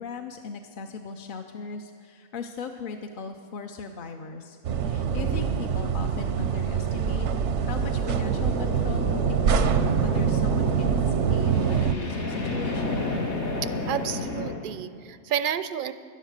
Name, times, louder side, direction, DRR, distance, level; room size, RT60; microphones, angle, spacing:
voice 1, 0.0-7.3 7.6-11.0 11.3-13.1, left 5 dB, 55° left, 5 dB, 0.7 m, -38 dB
sound 1, 4.6-12.0, right 7 dB, 85° right, 1.0 m, -25 dB
sound 2, 6.9-14.5, left 2 dB, 80° left, 2.0 m, -32 dB
voice 2, 13.9-15.9, right 9 dB, 60° right, 13 dB, 0.6 m, -30 dB
12.0 x 11.5 x 6.5 m, 2.1 s
omnidirectional pair, 1.2 m